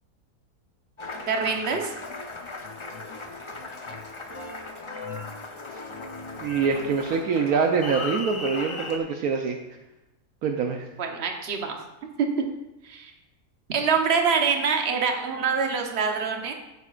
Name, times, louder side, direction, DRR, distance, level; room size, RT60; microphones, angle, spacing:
Applause, 1.0-9.0, left 3 dB, 35° left, 0.5 m, -37 dB
voice 1, 1.3-1.9 11.0-11.7 12.2-12.3 12.8-13.1 13.7-16.5, right 5 dB, 45° right, 3 dB, 1.2 m, -25 dB
voice 2, 6.4-9.6 10.4-10.9, right 5 dB, 70° right, 4 dB, 1.1 m, -25 dB
14.0 x 8.1 x 2.5 m, 0.95 s
omnidirectional pair, 1.7 m